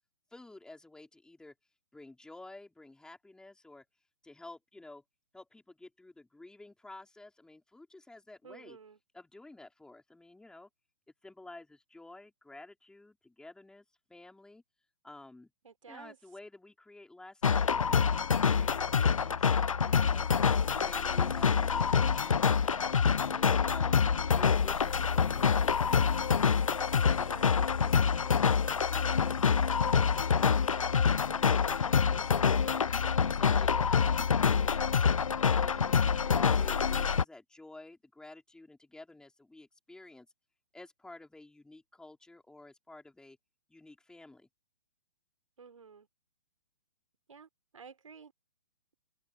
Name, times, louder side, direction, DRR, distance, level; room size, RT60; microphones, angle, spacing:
voice 1, 0.3-1.5 1.9-3.9 4.2-5.0 5.3-8.8 9.1-10.7 11.2-14.6 15.0-15.5 15.9-20.3 20.8-23.9 24.3-26.3 26.7-30.6 33.2-35.9 36.2-40.3 40.7-43.4 43.7-44.5, left 2 dB, 5° left, 4.2 m, -52 dB
voice 2, 8.4-9.0 15.6-16.2 27.3-27.7 45.6-46.1 47.3-48.3, right 5 dB, 80° right, 4.0 m, -51 dB
sound 1, 17.4-37.2, left 6 dB, 85° left, 0.7 m, -26 dB
open air
hypercardioid pair, 130°, 17 cm